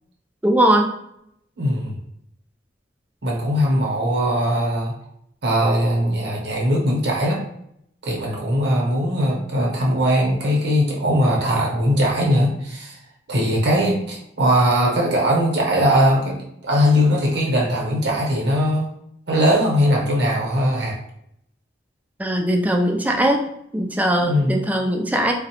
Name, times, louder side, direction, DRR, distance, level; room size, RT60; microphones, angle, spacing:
voice 1, 0.4-0.9 22.2-23.4 23.7-25.3, right 1 dB, 10° right, 2 dB, 0.3 m, -19 dB
voice 2, 1.6-1.9 3.2-4.9 5.4-7.4 8.0-13.0 13.3-18.9 19.3-21.0 24.2-24.5, equal, 60° right, -1 dB, 0.8 m, -20 dB
3.6 x 2.0 x 2.9 m, 0.75 s
head